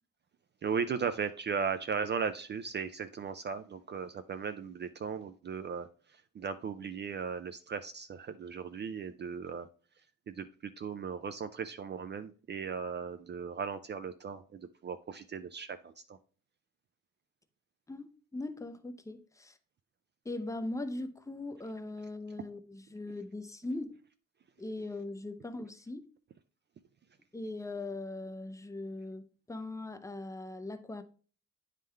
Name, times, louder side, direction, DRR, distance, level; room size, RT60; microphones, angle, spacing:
voice 1, 0.6-9.7 10.3-16.2, right 6 dB, 35° right, 0.4 m, -37 dB
voice 2, 17.9-19.6 20.2-24.0 24.6-26.1 27.3-31.0, left 2 dB, 10° left, 0.6 m, -40 dB
9.0 x 3.7 x 3.3 m
cardioid pair, 90°, 30 cm